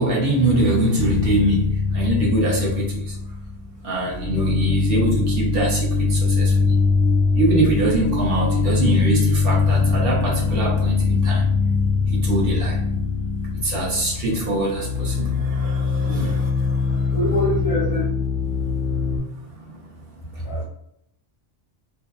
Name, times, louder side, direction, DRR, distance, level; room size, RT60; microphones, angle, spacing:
voice 1, 0.0-1.7 1.9-2.8 3.8-5.9 6.4-6.5 7.4-10.9 11.2-11.4 12.3-12.7 13.6-15.3 15.6-15.7 16.0-16.4, right 1 dB, 55° right, -3 dB, 0.8 m, -22 dB
sound 1, 1.0-3.8 4.1-19.2, left 4 dB, 75° left, 0.9 m, -22 dB
voice 2, 16.0-16.4 17.1-18.1 20.4-20.6, left 1 dB, 60° left, -6 dB, 0.3 m, -25 dB
2.6 x 2.2 x 2.3 m, 0.75 s
omnidirectional pair, 1.3 m